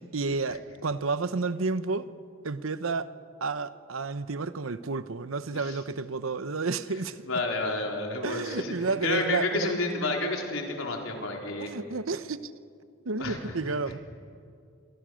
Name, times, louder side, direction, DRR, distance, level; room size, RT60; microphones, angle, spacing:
voice 1, 0.0-2.1 2.4-3.1 3.4-7.2 8.2-9.7 11.6-12.5 13.0-14.0, right 4 dB, 85° right, 13 dB, 1.0 m, -31 dB
voice 2, 7.2-11.7 13.2-13.7, left 2 dB, 85° left, 1 dB, 4.1 m, -30 dB
27.0 x 24.0 x 6.5 m, 2.4 s
head